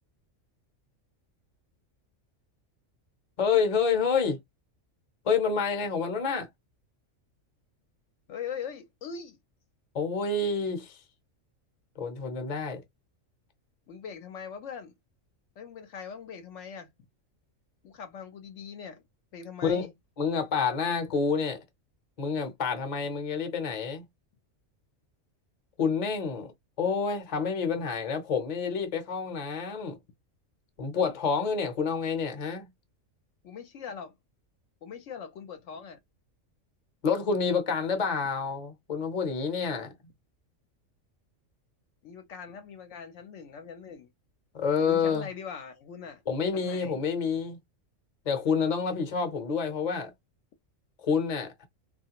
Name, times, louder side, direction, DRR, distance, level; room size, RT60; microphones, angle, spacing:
voice 1, 3.4-4.4 5.2-6.5 9.9-11.0 12.0-12.8 19.6-19.8 20.2-21.6 22.2-24.0 25.8-26.5 26.8-30.0 30.8-32.7 37.0-39.9 44.5-45.3 46.3-47.6 48.2-50.1 51.0-51.7, left 5 dB, 40° left, 0.7 m, -28 dB
voice 2, 8.3-9.4 13.9-14.9 15.6-16.9 17.8-19.0 19.3-19.9 33.4-34.1 34.8-36.0 42.0-44.1 44.8-46.2 46.5-47.0, left 6 dB, 70° left, 0.9 m, -41 dB
3.1 x 2.4 x 2.8 m
omnidirectional pair, 1.3 m